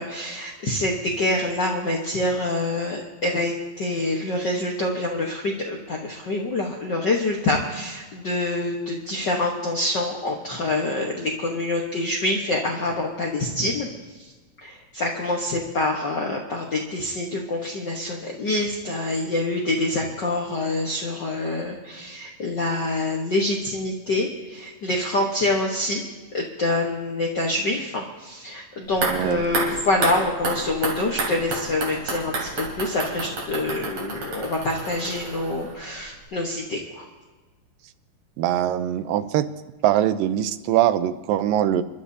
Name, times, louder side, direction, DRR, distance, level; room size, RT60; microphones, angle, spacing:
voice 1, 0.0-13.9 14.6-26.0 26.3-37.0, left 2 dB, 70° left, 0 dB, 1.0 m, -26 dB
sound 1, 28.9-36.0 36.3-36.4, right 3 dB, 60° right, 4.2 m, -30 dB
voice 2, 29.1-29.4 38.4-39.5 39.8-41.8, right 11 dB, 90° right, 12 dB, 2.4 m, -22 dB
28.0 x 12.0 x 2.8 m, 1.3 s
omnidirectional pair, 3.8 m